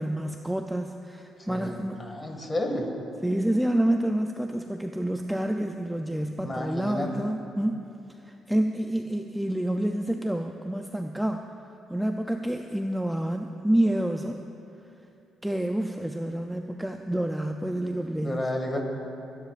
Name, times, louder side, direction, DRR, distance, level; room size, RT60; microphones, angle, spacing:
voice 1, 0.0-2.1 3.2-7.8 8.2-11.4 11.9-14.4 15.4-18.5, right 1 dB, 5° right, 4 dB, 0.5 m, -28 dB
voice 2, 1.4-2.9 6.4-7.1 18.2-18.8, left 1 dB, 25° left, 2 dB, 2.1 m, -31 dB
30.0 x 10.5 x 2.5 m, 2.8 s
cardioid pair, 90°, 0 cm